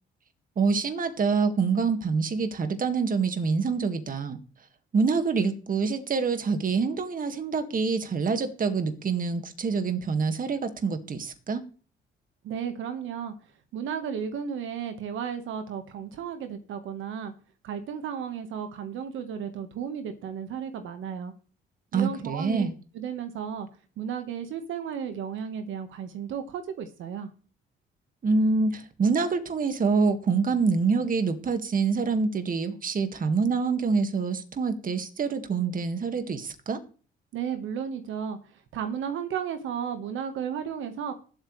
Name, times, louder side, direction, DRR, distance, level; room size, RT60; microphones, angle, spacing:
voice 1, 0.6-4.4 4.9-11.6 21.9-22.7 28.2-36.8, right 4 dB, 45° right, 2.0 m, -26 dB
voice 2, 12.4-13.3 13.7-17.3 17.6-21.3 21.9-22.7 22.9-23.7 24.0-27.3 37.3-41.1, right 8 dB, 80° right, 1.5 m, -34 dB
19.5 x 8.2 x 3.3 m
cardioid pair, 90°, 20 cm